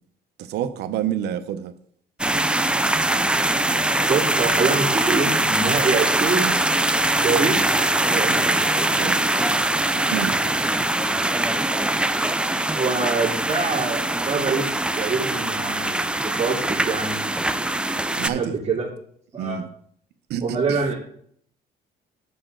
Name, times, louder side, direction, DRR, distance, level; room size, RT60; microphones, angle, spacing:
voice 1, 0.4-1.7 9.0-9.2 10.1-10.6 18.1-18.5 19.4-19.7 20.3-20.8, right 10 dB, 80° right, 0.9 m, -28 dB
sound 1, 2.2-18.3, right 1 dB, 5° right, 0.5 m, -22 dB
voice 2, 4.1-6.5 7.2-7.6 8.1-8.6 12.7-14.7 15.0-17.2 18.2-18.9 19.3-19.6 20.4-20.9, right 4 dB, 30° right, 2.4 m, -25 dB
9.9 x 7.0 x 3.8 m
cardioid pair, 110°, 17 cm